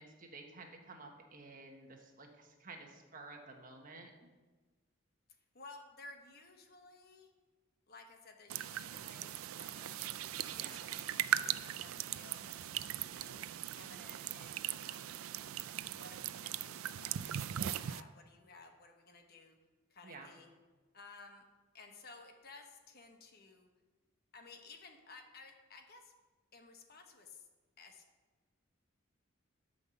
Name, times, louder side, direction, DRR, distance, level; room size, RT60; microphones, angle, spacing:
voice 1, 0.0-4.3 10.5-10.8 20.0-20.3, right 3 dB, 40° right, 3 dB, 1.3 m, -52 dB
voice 2, 5.5-7.3 7.9-12.7 13.1-13.5 13.7-15.0 15.9-19.6 19.9-20.5 20.9-21.4 21.7-23.7 24.3-26.1 26.5-27.5 27.8-28.0, left 3 dB, 50° left, 4 dB, 1.1 m, -56 dB
sound 1, 8.5-18.0, right 11 dB, 80° right, 0.4 m, -39 dB
11.5 x 5.4 x 7.0 m, 1.3 s
head